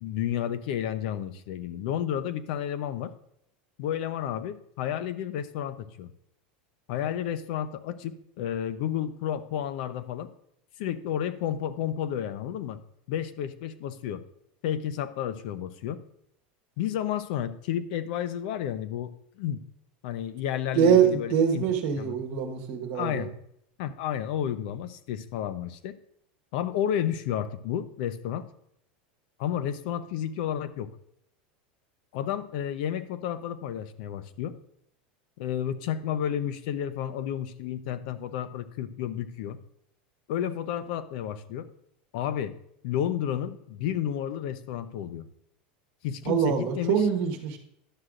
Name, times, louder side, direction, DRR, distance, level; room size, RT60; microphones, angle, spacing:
voice 1, 0.0-3.1 3.8-6.1 6.9-10.3 10.8-12.8 13.1-14.2 14.6-16.0 16.8-19.6 20.0-21.7 22.0-22.2 22.9-23.3 23.8-25.9 26.5-28.5 29.4-30.9 32.1-34.6 35.4-39.6 40.3-41.7 42.1-42.5 42.8-45.3 46.0-47.0, left 10 dB, 60° left, 13 dB, 0.6 m, -31 dB
voice 2, 20.7-23.3 46.2-47.6, right 8 dB, 50° right, 4 dB, 1.3 m, -24 dB
11.5 x 7.7 x 2.5 m, 0.73 s
supercardioid pair, 165°, 5 cm